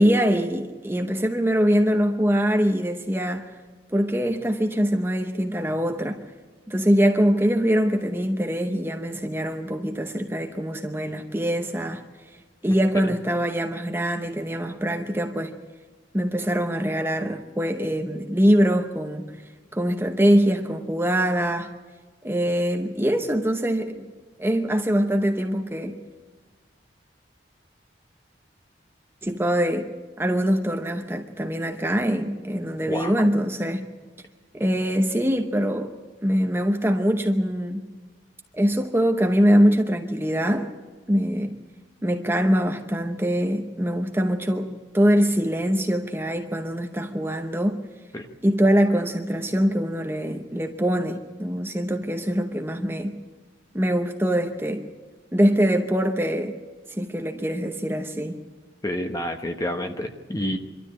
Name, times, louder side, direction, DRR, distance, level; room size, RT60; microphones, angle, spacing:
voice 1, 0.0-3.5 3.9-6.2 6.7-12.0 12.6-15.5 16.1-19.4 19.7-21.7 22.2-24.1 24.4-26.0 29.2-29.9 30.2-33.9 34.5-35.9 36.2-37.8 38.5-40.7 41.1-41.6 42.0-47.8 48.4-53.2 53.7-54.9 55.3-56.6 56.9-58.4, equal, 15° right, 4 dB, 0.8 m, -23 dB
voice 2, 12.7-13.1 32.9-33.3 48.1-48.3 58.8-60.6, left 1 dB, 20° left, 5 dB, 1.0 m, -29 dB
25.0 x 13.0 x 8.5 m, 1.4 s
head